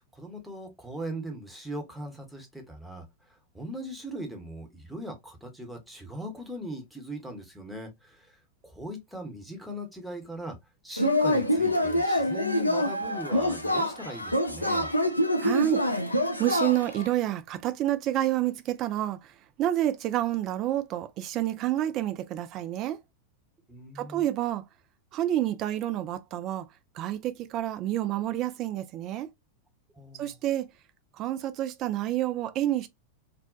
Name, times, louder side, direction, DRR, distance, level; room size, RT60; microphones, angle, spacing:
voice 1, 0.0-3.0 3.5-8.3 8.6-10.6 10.8-14.9 23.7-24.2 30.0-30.3, equal, 5° right, 0.9 m, -39 dB
Yell / Cheering, 11.0-17.1, left 1 dB, 85° left, 0.4 m, -26 dB
voice 2, 15.4-15.8 16.4-23.0 24.0-24.6 25.1-26.7 26.9-29.3 30.2-30.7 31.2-32.9, right 13 dB, 35° right, 0.3 m, -29 dB
2.5 x 2.1 x 2.3 m
figure-of-eight pair, 90°, 0 cm